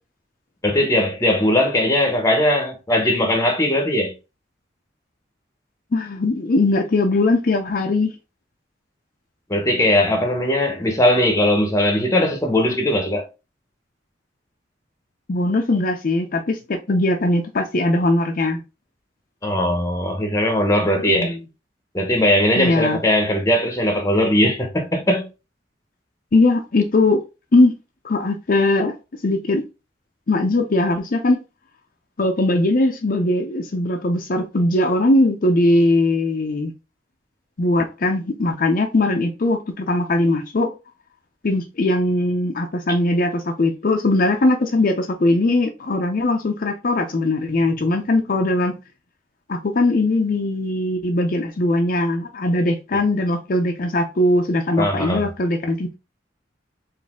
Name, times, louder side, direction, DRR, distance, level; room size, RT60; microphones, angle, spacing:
voice 1, 0.6-4.1 9.5-13.3 19.4-21.4 21.9-25.3 54.8-55.3, left 1 dB, 15° left, 0.8 m, -19 dB
voice 2, 5.9-8.1 15.3-18.6 21.0-21.4 22.6-23.0 26.3-27.2 27.5-27.7 28.0-28.9 29.2-29.6 30.3-31.4 32.2-36.7 37.6-40.7 41.4-48.7 49.5-56.0, left 2 dB, 50° left, 0.5 m, -20 dB
4.1 x 2.6 x 3.5 m
head